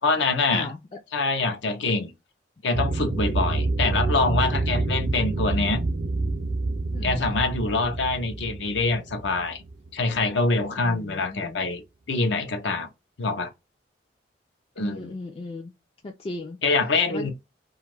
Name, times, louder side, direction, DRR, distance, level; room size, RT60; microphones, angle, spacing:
voice 1, 0.0-0.7 1.1-2.1 2.6-5.8 7.0-9.6 9.9-11.8 12.1-12.9 13.2-13.5 14.8-15.1 16.6-17.3, left 3 dB, 80° left, 0.6 m, -25 dB
sound 1, 2.7-10.7, right 2 dB, 50° right, 0.5 m, -27 dB
voice 2, 6.9-7.4 10.8-11.6 14.8-15.7 16.0-16.6 17.1-17.3, left 2 dB, 30° left, 0.3 m, -36 dB
2.5 x 2.4 x 3.1 m
head